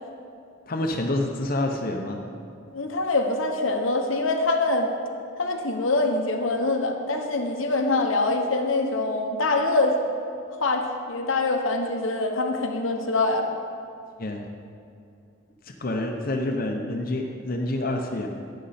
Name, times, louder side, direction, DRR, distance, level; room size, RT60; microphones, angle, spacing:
voice 1, 0.7-2.2 14.2-14.4 15.8-18.3, left 1 dB, 45° left, 2 dB, 0.8 m, -27 dB
voice 2, 2.7-4.9 5.4-10.0 10.6-13.5, left 2 dB, 85° left, 3 dB, 1.1 m, -24 dB
11.5 x 9.1 x 4.3 m, 2.4 s
head